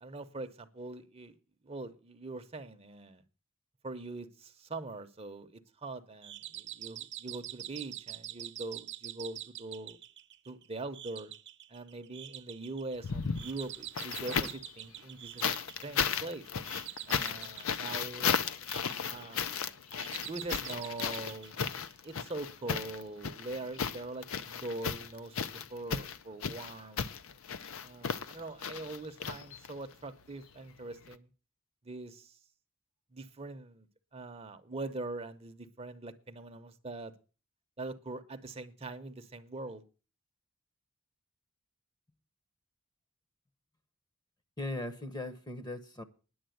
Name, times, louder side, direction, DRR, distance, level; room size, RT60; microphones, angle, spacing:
voice 1, 0.0-1.3 1.6-3.2 3.8-10.0 10.5-11.3 11.7-15.5 15.8-16.5 17.1-18.6 19.1-19.8 20.3-21.6 22.0-27.1 27.8-31.3 31.8-32.4 33.1-33.9 34.1-37.1 37.8-39.8, right 2 dB, 30° right, 0.8 m, -42 dB
sound 1, 6.2-22.3, right 13 dB, 55° right, 0.9 m, -46 dB
sound 2, 13.0-14.7 15.4-29.9 31.1-31.2, left 6 dB, 65° left, 0.6 m, -35 dB
voice 2, 44.6-46.0, left 2 dB, 20° left, 0.9 m, -38 dB
10.5 x 7.5 x 7.7 m
head